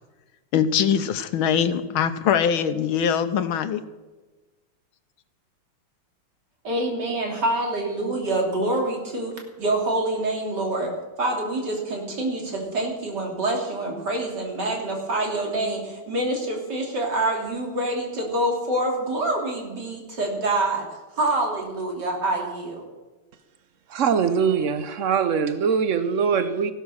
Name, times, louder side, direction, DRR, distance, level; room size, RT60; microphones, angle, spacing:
voice 1, 0.5-3.8, left 8 dB, 75° left, 11 dB, 1.5 m, -22 dB
voice 2, 6.6-10.9 11.2-22.9, right 2 dB, 50° right, 0 dB, 3.6 m, -26 dB
voice 3, 23.9-26.7, right 6 dB, 85° right, 10 dB, 0.6 m, -22 dB
15.5 x 12.0 x 6.3 m, 1.2 s
omnidirectional pair, 2.4 m